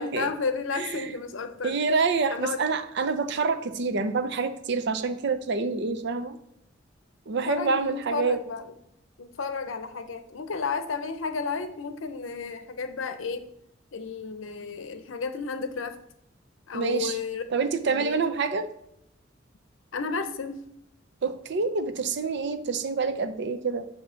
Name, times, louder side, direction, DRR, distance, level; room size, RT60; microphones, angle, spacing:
voice 1, 0.0-1.7 2.3-2.6 7.5-8.7 9.2-13.5 13.9-16.0 16.7-17.4 17.9-18.2 19.9-20.6, left 5 dB, 80° left, 10 dB, 0.6 m, -32 dB
voice 2, 0.8-1.1 1.6-6.4 7.3-8.4 16.7-17.2 17.5-18.7 21.2-23.9, right 4 dB, 60° right, 11 dB, 0.5 m, -27 dB
7.6 x 2.8 x 5.6 m, 0.80 s
head